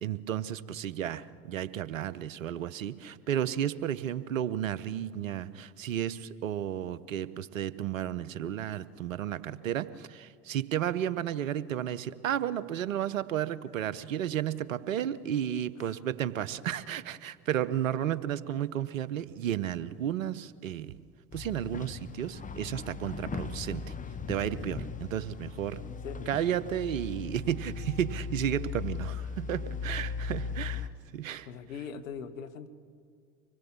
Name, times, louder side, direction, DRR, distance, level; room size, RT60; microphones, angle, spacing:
voice 1, 0.0-21.0 21.3-23.8 24.3-25.8 26.3-30.9 31.1-31.5, right 10 dB, 75° right, 17 dB, 0.9 m, -33 dB
sound 1, 21.3-30.9, left 5 dB, 20° left, 1.2 m, -38 dB
voice 2, 25.8-26.4 30.7-30.9 31.5-32.7, left 6 dB, 75° left, 9 dB, 1.3 m, -42 dB
25.0 x 21.0 x 7.2 m, 2.1 s
figure-of-eight pair, 70°, 40 cm